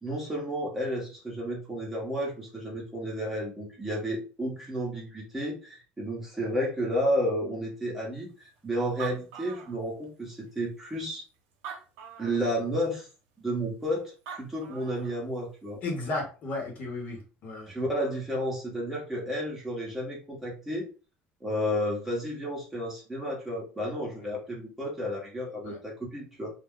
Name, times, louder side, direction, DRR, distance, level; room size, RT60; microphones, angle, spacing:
voice 1, 0.0-11.2 12.2-13.1 13.4-15.8 17.7-20.9 21.4-26.5, equal, 10° right, -3 dB, 0.9 m, -32 dB
Animal, 8.6-8.7 8.8-10.2 10.9-11.0 11.5-12.5 14.0-14.1 14.3-15.2, right 7 dB, 80° right, 0.8 m, -42 dB
voice 2, 15.8-17.7 25.6-25.8, left 2 dB, 40° left, 0 dB, 0.9 m, -34 dB
2.3 x 2.1 x 3.5 m, 0.35 s
cardioid pair, 150°, 4 cm